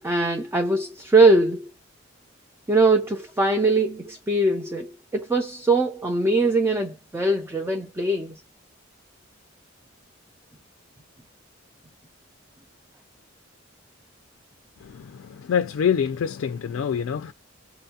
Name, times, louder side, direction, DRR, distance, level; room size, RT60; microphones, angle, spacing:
voice 1, 0.0-1.7 2.7-8.4, right 2 dB, 10° right, 0.4 m, -21 dB
voice 2, 15.5-17.3, left 7 dB, 70° left, 0.3 m, -24 dB
5.7 x 2.2 x 2.8 m
head